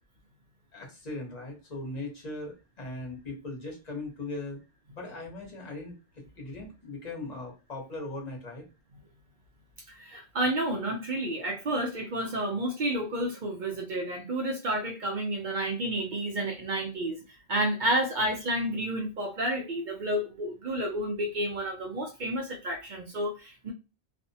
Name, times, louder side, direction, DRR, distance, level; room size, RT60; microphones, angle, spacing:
voice 1, 0.7-4.6 4.9-8.7, left 2 dB, 40° left, -1 dB, 1.0 m, -39 dB
voice 2, 9.9-17.2 17.5-23.7, right 1 dB, 55° right, 2 dB, 0.6 m, -30 dB
2.5 x 2.1 x 2.6 m, 0.29 s
omnidirectional pair, 1.1 m